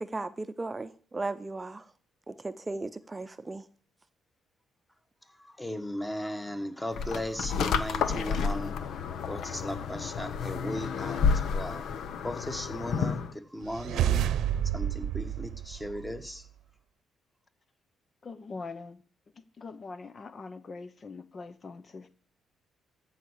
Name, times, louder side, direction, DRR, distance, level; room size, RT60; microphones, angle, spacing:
voice 1, 0.0-1.8 2.3-3.6, right 2 dB, 20° right, 0.7 m, -36 dB
voice 2, 5.4-8.8 9.3-11.3 11.5-11.8 12.2-14.3 14.7-16.4, left 1 dB, 10° left, 1.6 m, -37 dB
sound 1, 7.0-13.3, left 6 dB, 70° left, 1.1 m, -30 dB
sound 2, 13.6-16.4, right 10 dB, 80° right, 0.8 m, -30 dB
voice 3, 18.2-19.0 19.6-22.2, left 4 dB, 40° left, 0.8 m, -42 dB
14.0 x 5.8 x 8.3 m
cardioid pair, 90°, 0 cm